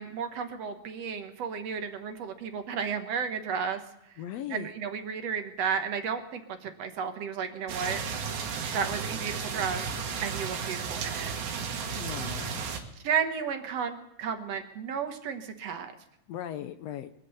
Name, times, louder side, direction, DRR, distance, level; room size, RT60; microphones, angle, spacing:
voice 1, 0.0-3.8 4.1-4.2 4.5-8.0 8.7-9.9 10.2-11.3 13.0-15.9, right 6 dB, 65° right, 6 dB, 2.1 m, -33 dB
voice 2, 4.2-4.7 12.0-12.6 16.3-17.1, left 11 dB, 75° left, 11 dB, 1.7 m, -38 dB
sound 1, 7.7-12.8, right 6 dB, 85° right, 3.0 m, -34 dB
23.5 x 8.3 x 7.0 m, 0.87 s
omnidirectional pair, 3.3 m